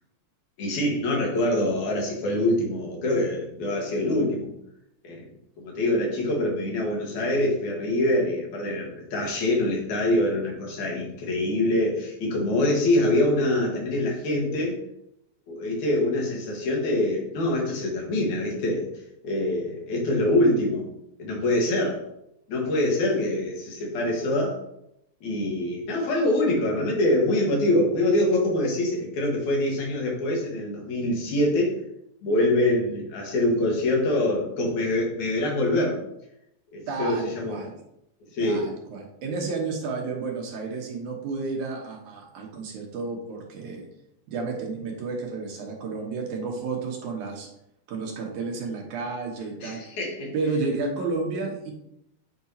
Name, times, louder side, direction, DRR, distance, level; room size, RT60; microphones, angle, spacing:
voice 1, 0.6-4.5 5.0-5.2 5.6-14.8 15.5-18.9 19.2-20.8 21.2-22.0 22.5-24.6 25.2-31.7 32.2-36.0 36.7-37.6 38.3-38.6 49.6-50.3, left 1 dB, 80° left, -1 dB, 3.0 m, -24 dB
voice 2, 36.9-37.8 38.4-43.9 44.3-47.5 47.9-49.8 50.3-51.7, right 4 dB, 85° right, 0 dB, 2.6 m, -31 dB
8.6 x 4.8 x 2.8 m, 0.80 s
omnidirectional pair, 3.3 m